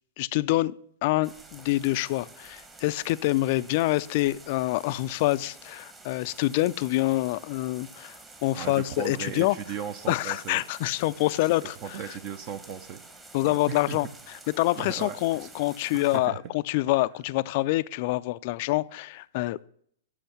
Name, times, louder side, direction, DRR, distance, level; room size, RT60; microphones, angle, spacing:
voice 1, 0.2-0.8 1.0-9.6 10.1-11.8 13.3-19.7, left 18 dB, 50° left, 17 dB, 0.3 m, -26 dB
sound 1, 1.2-16.2, right 3 dB, 15° right, 1.2 m, -49 dB
voice 2, 8.5-10.6 11.6-13.0 13.4-14.0 14.8-15.5 15.9-16.4, right 8 dB, 40° right, 10 dB, 0.7 m, -37 dB
7.8 x 6.4 x 5.9 m, 0.65 s
hypercardioid pair, 110°, 0 cm